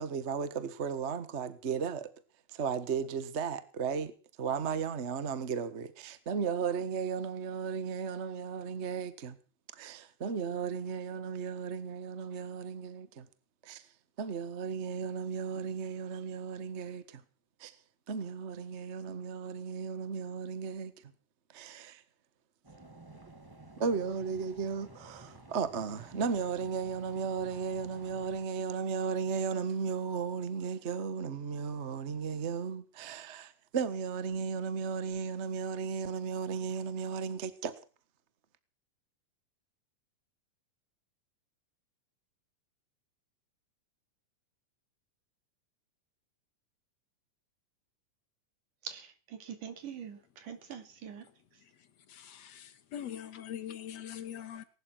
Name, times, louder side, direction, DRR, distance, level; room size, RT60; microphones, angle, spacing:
voice 1, 0.0-2.1 2.5-4.1 4.4-9.4 9.7-13.3 13.6-13.8 14.2-17.2 17.6-17.7 18.1-20.9 21.5-22.0 23.8-37.7, right 6 dB, 50° right, 0.8 m, -35 dB
sound 1, 22.6-28.4, right 2 dB, 15° right, 0.8 m, -54 dB
voice 2, 48.8-51.3, right 8 dB, 90° right, 4.0 m, -44 dB
voice 3, 52.1-54.6, left 10 dB, 65° left, 2.2 m, -42 dB
19.0 x 12.0 x 6.2 m
omnidirectional pair, 3.6 m